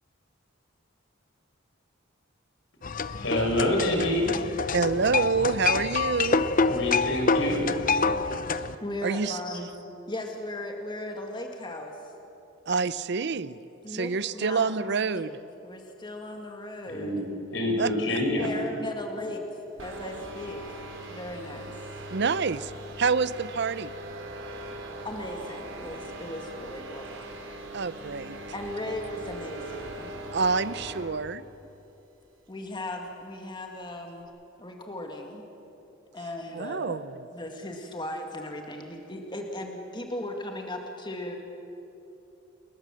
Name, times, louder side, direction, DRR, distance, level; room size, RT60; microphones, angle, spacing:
sound 1, 2.8-8.8, left 4 dB, 45° left, 0.7 m, -27 dB
voice 1, 3.2-4.3 6.7-7.6 16.9-17.2 17.5-18.5, left 1 dB, 70° left, 1 dB, 6.0 m, -26 dB
voice 2, 4.7-6.5 9.0-9.4 12.7-13.6 13.9-15.3 17.8-18.5 22.1-22.7 23.0-23.9 27.7-28.4 30.3-31.4 36.5-37.2, right 4 dB, 60° right, 16 dB, 0.6 m, -27 dB
voice 3, 8.8-9.7 10.1-12.1 13.8-17.3 18.1-20.8 21.1-22.1 25.0-27.4 28.5-30.1 32.5-34.3 34.6-35.5 36.1-37.0 37.3-41.3, left 1 dB, 25° left, 3 dB, 2.0 m, -37 dB
sound 2, 19.8-31.2, right 1 dB, 85° right, 4.2 m, -40 dB
29.5 x 21.0 x 7.6 m, 3.0 s
head